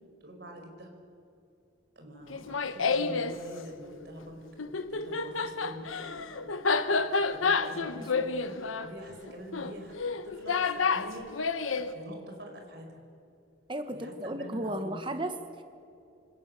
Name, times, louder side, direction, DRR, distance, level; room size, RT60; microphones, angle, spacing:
voice 1, 0.2-1.0 1.9-10.0 10.2-11.6 11.9-13.0 13.9-15.0, equal, 55° right, 3 dB, 5.1 m, -45 dB
Laughter, 2.3-3.4 4.6-11.9, left 4 dB, 90° left, 1.2 m, -29 dB
voice 2, 13.7-15.6, right 1 dB, 25° right, 7 dB, 1.2 m, -35 dB
27.0 x 24.5 x 6.9 m, 2.7 s
head